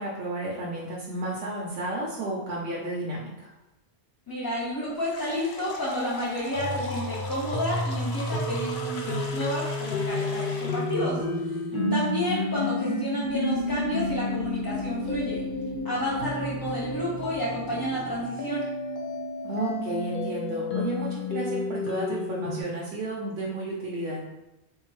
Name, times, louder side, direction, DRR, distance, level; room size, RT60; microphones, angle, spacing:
voice 1, 0.0-3.5 11.7-12.2 19.4-24.2, right 2 dB, 85° right, -4 dB, 0.9 m, -32 dB
voice 2, 4.3-11.2 11.9-15.4 15.8-18.7, equal, 30° left, -7 dB, 0.4 m, -31 dB
sound 1, 5.0-11.0, left 3 dB, 90° left, 0.9 m, -39 dB
sound 2, 6.5-22.6, left 2 dB, 60° left, 0.7 m, -31 dB
sound 3, 13.2-18.2, left 2 dB, 30° right, 0.7 m, -37 dB
3.5 x 2.7 x 3.0 m, 0.95 s
omnidirectional pair, 1.1 m